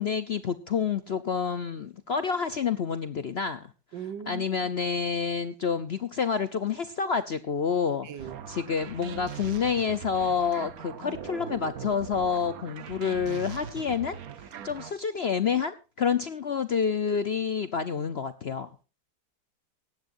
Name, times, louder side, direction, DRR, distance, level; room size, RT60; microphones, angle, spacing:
voice 1, 0.0-3.7 4.3-8.1 8.5-14.2 14.6-18.7, left 6 dB, 55° left, 0.7 m, -28 dB
voice 2, 3.9-4.7 8.0-8.4, right 8 dB, 85° right, 1.8 m, -39 dB
sound 1, 8.2-14.9, right 7 dB, 60° right, 1.3 m, -41 dB
18.5 x 15.0 x 2.6 m
omnidirectional pair, 1.9 m